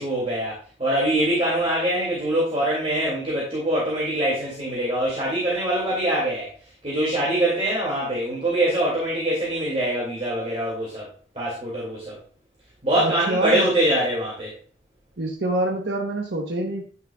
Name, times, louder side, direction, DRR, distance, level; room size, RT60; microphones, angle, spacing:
voice 1, 0.0-6.5 6.8-11.1 11.3-12.2 12.8-14.5, right 1 dB, 35° right, -6 dB, 2.3 m, -24 dB
voice 2, 13.0-13.7 15.2-16.9, right 2 dB, 65° right, 1 dB, 0.9 m, -26 dB
9.3 x 6.5 x 2.3 m, 0.40 s
head